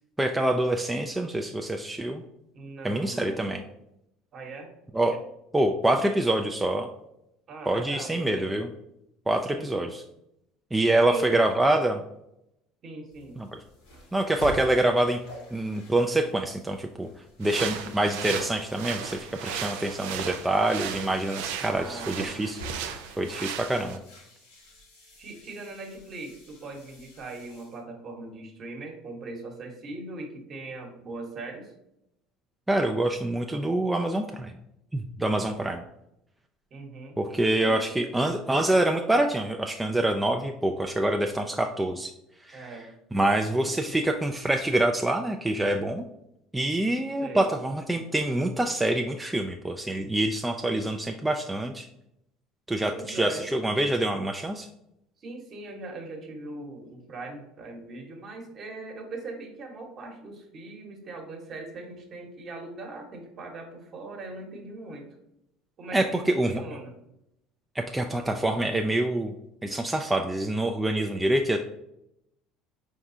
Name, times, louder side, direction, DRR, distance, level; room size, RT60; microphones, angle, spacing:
voice 1, 0.2-2.2 2.8-3.6 4.9-5.2 5.5-6.9 7.7-8.7 9.3-10.0 10.7-12.0 13.4-13.6 14.1-15.2 15.5-17.1 17.4-24.0 32.7-34.5 34.9-35.8 37.2-42.1 42.4-42.8 43.1-46.0 46.5-51.9 52.7-54.7 65.9-66.6 67.7-69.3 69.6-71.6, right 1 dB, 10° right, 3 dB, 0.4 m, -26 dB
voice 2, 2.5-3.7 4.3-4.7 7.5-8.5 9.5-9.9 10.9-11.4 12.8-13.4 21.7-22.4 25.2-31.7 36.7-37.2 37.6-37.9 42.5-42.9 43.6-44.0 47.2-47.5 52.9-53.4 55.2-65.1 65.8-66.9, right 3 dB, 45° right, 2 dB, 1.2 m, -40 dB
sound 1, 13.1-27.8, equal, 85° left, 1.5 m, -47 dB
sound 2, 17.4-24.0, right 8 dB, 75° right, 0.4 m, -36 dB
4.7 x 3.6 x 2.7 m, 0.82 s
hypercardioid pair, 75°, 0 cm